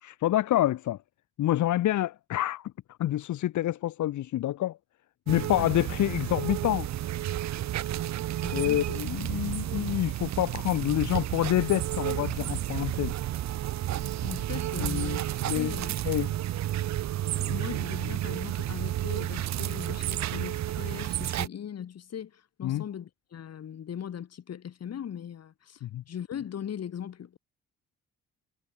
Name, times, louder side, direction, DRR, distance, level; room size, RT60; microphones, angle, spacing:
voice 1, 0.0-1.0 1.4-2.7 3.0-4.8 5.3-6.9 8.5-13.1 14.8-15.7 16.0-16.3 22.6-22.8 25.8-26.0, left 13 dB, 75° left, 1.5 m, -27 dB
sound 1, 5.3-21.5, right 13 dB, 65° right, 0.9 m, -31 dB
voice 2, 8.4-8.9 14.2-15.9 17.4-27.4, left 9 dB, 55° left, 3.7 m, -39 dB
cardioid pair, 90°, 30 cm